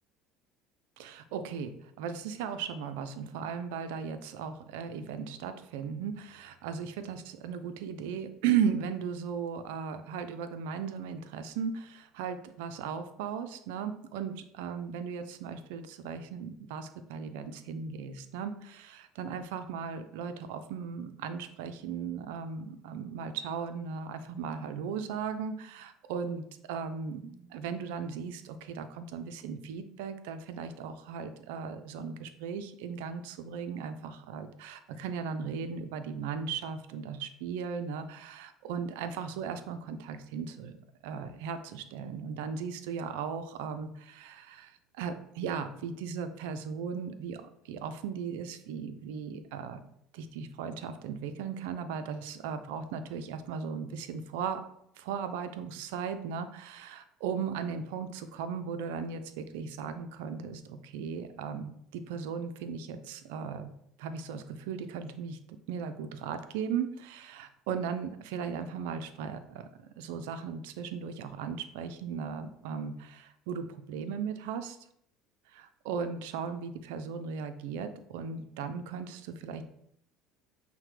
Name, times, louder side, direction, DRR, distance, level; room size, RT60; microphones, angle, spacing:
voice 1, 1.0-40.8 41.0-49.8 50.1-54.6 55.0-63.7 64.0-69.7 70.0-74.8 75.5-79.6, right 6 dB, 80° right, 9 dB, 0.4 m, -37 dB
5.5 x 2.1 x 3.2 m, 0.72 s
hypercardioid pair, 80°, 0 cm